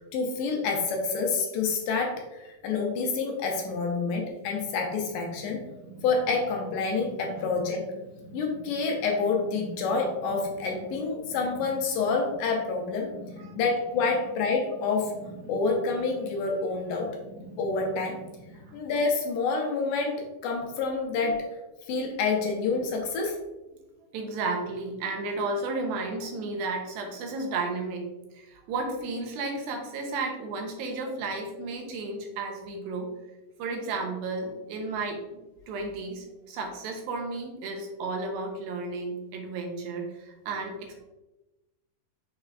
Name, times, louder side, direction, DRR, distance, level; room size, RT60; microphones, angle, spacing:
voice 1, 0.1-5.6 6.0-7.9 8.3-13.1 13.6-15.1 15.5-17.2 17.6-18.2 18.7-21.5 21.9-23.4, left 4 dB, 80° left, 1 dB, 2.1 m, -28 dB
Purr, 4.3-19.1, right 1 dB, 70° right, 2.1 m, -47 dB
voice 2, 24.1-33.1 33.6-35.4 35.7-41.0, right 3 dB, 90° right, 2 dB, 2.6 m, -33 dB
6.5 x 3.3 x 2.4 m, 1.0 s
omnidirectional pair, 4.1 m